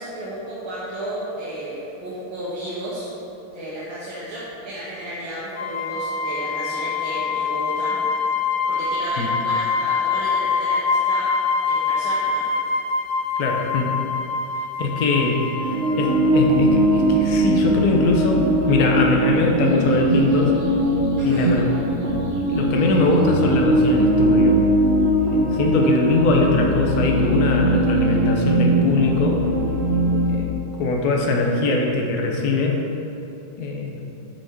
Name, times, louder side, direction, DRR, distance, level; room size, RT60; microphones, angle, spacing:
voice 1, 0.0-3.1 3.5-8.0 8.7-11.3 11.7-12.5 21.2-21.5, right 1 dB, 75° right, -9 dB, 1.9 m, -33 dB
sound 1, 5.5-17.0, left 5 dB, 35° left, 1.0 m, -25 dB
voice 2, 13.4-13.9 14.8-20.5 21.2-21.6 22.4-24.6 25.3-29.4 30.3-30.5 30.8-32.8 33.6-34.0, left 3 dB, 60° left, 1 dB, 1.1 m, -22 dB
sound 2, 15.6-30.4, right 1 dB, 50° right, 0.7 m, -20 dB
6.7 x 4.8 x 4.5 m, 2.9 s
omnidirectional pair, 2.3 m